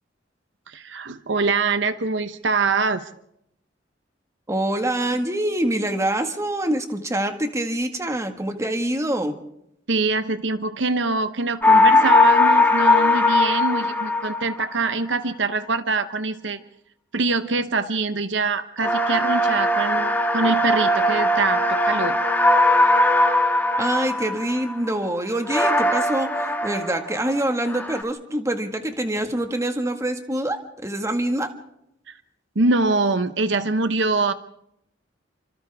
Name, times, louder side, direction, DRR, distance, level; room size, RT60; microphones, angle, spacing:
voice 1, 0.7-3.1 9.9-16.6 17.1-22.2 32.1-32.2 32.5-34.3, right 3 dB, 70° right, 11 dB, 1.0 m, -24 dB
voice 2, 4.5-9.3 23.8-31.5, right 1 dB, 15° right, 6 dB, 1.8 m, -25 dB
sound 1, 11.6-14.9 18.8-24.9 25.5-27.4 27.7-28.0, left 2 dB, 10° left, 1.7 m, -19 dB
30.0 x 26.0 x 3.6 m, 0.76 s
head